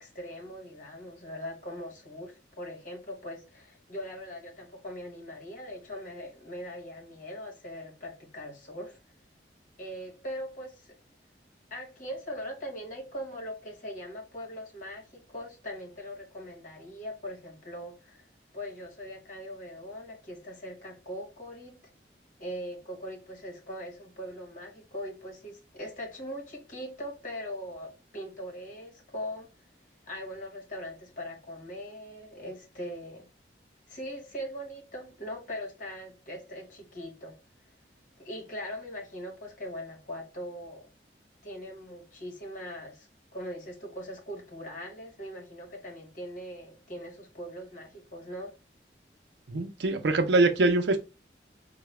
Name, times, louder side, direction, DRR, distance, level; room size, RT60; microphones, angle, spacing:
voice 1, 0.0-9.0 9.8-11.0 11.7-18.2 18.5-21.9 22.4-29.5 30.1-33.3 33.9-37.4 38.2-40.9 41.4-43.1 43.3-48.5, equal, 45° left, 1.2 m, -41 dB
voice 2, 49.5-51.0, right 2 dB, 75° right, 0.6 m, -24 dB
4.7 x 2.2 x 3.1 m
head